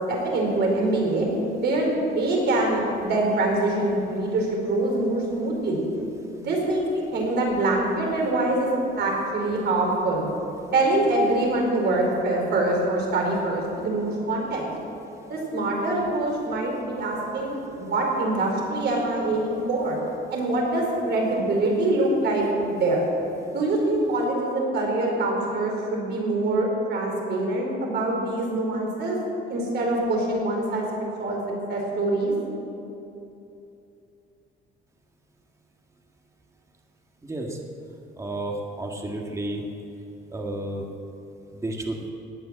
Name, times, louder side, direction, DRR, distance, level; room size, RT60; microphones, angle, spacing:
voice 1, 0.1-1.3 1.6-5.8 6.3-10.3 10.7-14.7 15.3-20.0 20.3-23.0 23.5-29.2 29.5-31.4 31.7-32.3, right 2 dB, 60° right, -1 dB, 4.8 m, -24 dB
voice 2, 38.2-38.5 38.8-39.6 40.3-40.8 41.6-42.0, right 2 dB, 15° right, 1 dB, 1.7 m, -31 dB
18.5 x 9.4 x 7.7 m, 2.8 s
cardioid pair, 130°, 20 cm